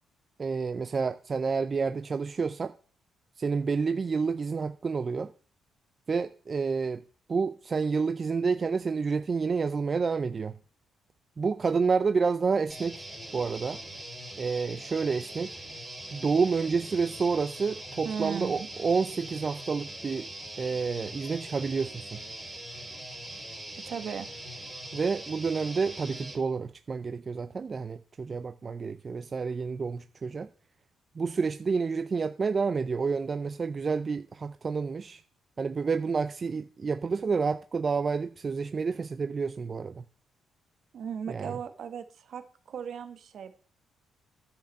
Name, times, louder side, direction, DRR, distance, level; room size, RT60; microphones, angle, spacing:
voice 1, 0.4-2.7 3.4-5.3 6.1-7.0 7.3-10.6 11.4-13.1 13.3-13.8 14.4-15.5 16.1-20.3 20.6-22.2 24.9-30.5 31.2-35.2 35.6-40.0 41.3-41.5, right 5 dB, 35° right, 0.5 m, -29 dB
sound 1, 12.7-26.4, right 1 dB, 5° right, 3.6 m, -42 dB
voice 2, 18.0-18.7 23.8-24.3 40.9-43.5, right 7 dB, 65° right, 1.5 m, -37 dB
10.0 x 5.8 x 7.6 m
cardioid pair, 90°, 0 cm